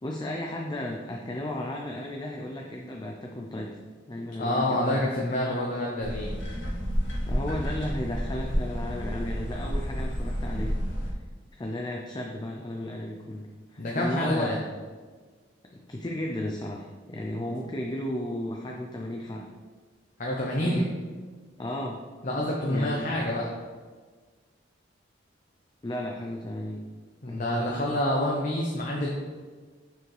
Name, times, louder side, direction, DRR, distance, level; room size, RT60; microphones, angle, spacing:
voice 1, 0.0-3.8 4.1-5.1 7.3-10.8 11.1-11.2 11.5-14.7 15.7-19.5 20.6-20.9 21.6-22.0 22.7-22.9 25.8-26.9 27.3-27.8, left 1 dB, 20° left, 0 dB, 0.5 m, -34 dB
voice 2, 4.4-6.3 13.8-14.6 20.2-20.9 22.2-23.5 27.2-29.1, left 1 dB, 45° left, -2 dB, 0.8 m, -27 dB
sound 1, 6.0-11.1, equal, 85° left, 1.5 m, -30 dB
6.8 x 6.3 x 3.3 m, 1.5 s
head